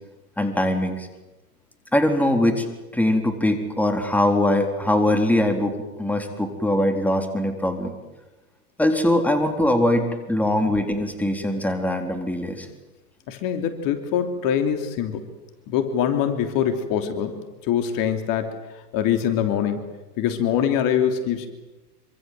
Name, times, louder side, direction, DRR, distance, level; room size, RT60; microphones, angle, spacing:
voice 1, 0.4-1.1 1.9-2.7 2.9-8.0 8.8-12.7, left 1 dB, 5° left, 5 dB, 3.9 m, -22 dB
voice 2, 13.3-15.3 15.7-19.8 20.2-21.5, left 9 dB, 45° left, 7 dB, 3.3 m, -24 dB
26.0 x 25.5 x 7.8 m, 1.1 s
hypercardioid pair, 105°, 46 cm